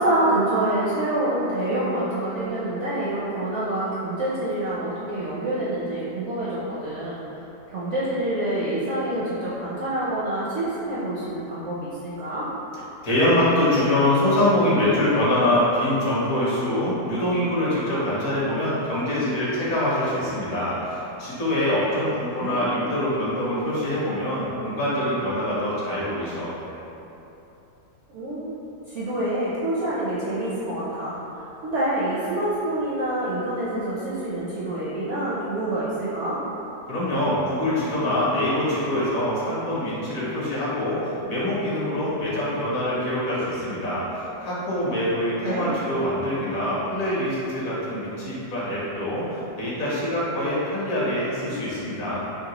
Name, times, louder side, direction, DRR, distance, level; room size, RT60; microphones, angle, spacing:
voice 1, 0.0-7.2 7.7-12.5 22.4-22.6 28.1-28.6 28.9-36.4 45.4-45.7, right 1 dB, 65° right, -9 dB, 0.7 m, -26 dB
voice 2, 13.0-26.5 36.9-52.2, left 1 dB, 60° left, -8 dB, 1.2 m, -24 dB
3.8 x 2.9 x 2.9 m, 3.0 s
omnidirectional pair, 1.8 m